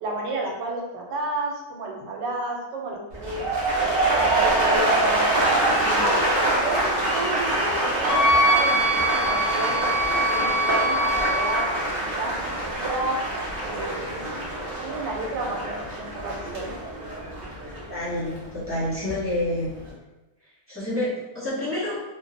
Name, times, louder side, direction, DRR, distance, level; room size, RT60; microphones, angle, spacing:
voice 1, 0.0-3.4 3.8-5.3 5.8-6.2 6.5-9.9 10.3-11.6 12.2-13.2 13.6-14.2 14.8-16.7, right 2 dB, 90° right, 0 dB, 1.2 m, -31 dB
sound 1, 3.1-19.2 19.5-19.9, right 1 dB, 50° right, 0.5 m, -25 dB
Wind instrument woodwind instrument, 8.1-11.7, equal, 80° left, 1.5 m, -23 dB
voice 2, 17.9-19.8 20.7-22.0, left 1 dB, 10° right, -11 dB, 0.8 m, -28 dB
3.0 x 2.2 x 2.6 m, 1.1 s
omnidirectional pair, 1.8 m